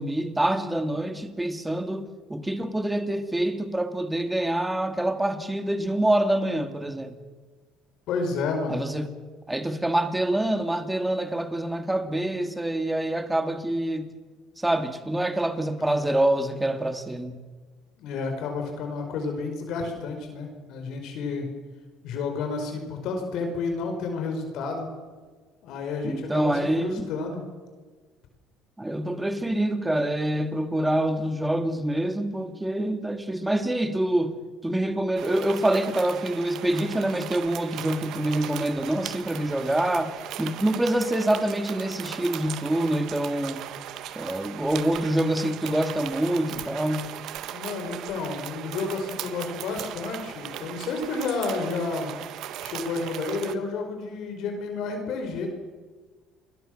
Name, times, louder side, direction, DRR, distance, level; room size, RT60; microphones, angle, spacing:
voice 1, 0.0-7.2 8.7-9.1 9.5-14.1 14.6-17.4 26.0-27.1 28.8-34.3 34.6-43.6 44.2-47.1, right 1 dB, 10° right, 2.5 m, -26 dB
voice 2, 8.1-8.9 18.0-21.5 22.0-24.9 25.6-27.4 47.5-52.2 52.6-55.5, left 4 dB, 70° left, 5.1 m, -31 dB
sound 1, 35.2-53.6, right 11 dB, 65° right, 1.6 m, -38 dB
28.0 x 22.0 x 6.7 m
supercardioid pair, 95°, 0 cm